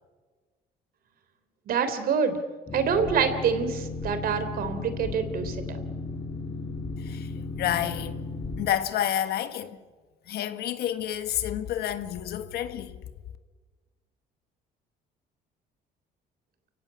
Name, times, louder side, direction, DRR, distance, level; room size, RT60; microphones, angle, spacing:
voice 1, 1.7-2.4 2.7-5.8, right 6 dB, 60° right, 3.4 m, -26 dB
Boat Water vehicle, 2.7-8.7, left 3 dB, 30° left, 3.6 m, -35 dB
voice 2, 7.0-7.3 7.6-8.2 8.6-9.8 10.3-13.0, left 11 dB, 70° left, 1.6 m, -29 dB
29.5 x 16.0 x 9.6 m
cardioid pair, 110°, 17 cm